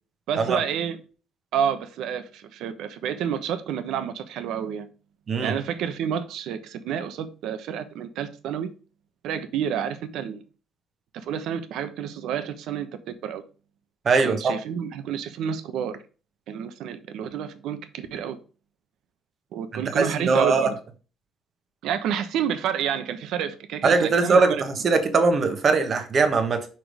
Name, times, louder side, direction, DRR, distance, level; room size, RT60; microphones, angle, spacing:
voice 1, 0.3-1.0 1.5-4.9 5.4-8.7 9.2-10.4 11.1-13.4 14.2-16.0 16.5-18.4 19.5-20.8 21.8-24.6, right 8 dB, 70° right, 1.0 m, -29 dB
voice 2, 14.0-14.5 19.7-20.7 23.8-26.6, right 4 dB, 30° right, 1.2 m, -21 dB
6.0 x 5.1 x 4.9 m
cardioid pair, 175°, 0 cm